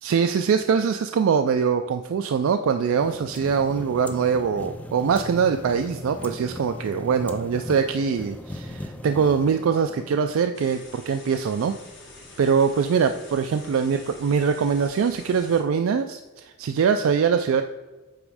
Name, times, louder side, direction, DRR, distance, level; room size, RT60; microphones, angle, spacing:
voice 1, 0.0-11.8 12.4-17.6, right 6 dB, 85° right, 7 dB, 0.3 m, -23 dB
sound 1, 2.6-10.9, left 1 dB, 5° left, 0.4 m, -39 dB
sound 2, 10.5-15.6, left 2 dB, 60° left, 1.6 m, -46 dB
8.5 x 3.1 x 4.8 m, 1.2 s
head